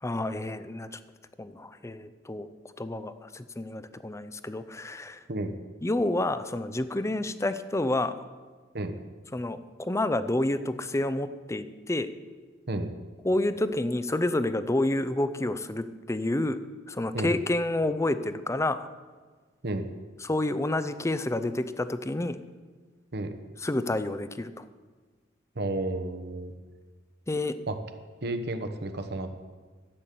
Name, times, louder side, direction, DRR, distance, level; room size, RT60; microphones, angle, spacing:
voice 1, 0.0-0.9 1.4-2.5 2.8-5.2 5.8-8.1 9.3-12.1 13.2-16.6 16.9-18.9 20.2-22.4 23.6-24.6 27.3-27.6, left 1 dB, 15° left, 12 dB, 0.5 m, -29 dB
voice 2, 25.5-26.5 27.7-27.8 28.2-29.3, right 2 dB, 60° right, 8 dB, 1.1 m, -31 dB
12.0 x 8.4 x 7.5 m, 1.4 s
head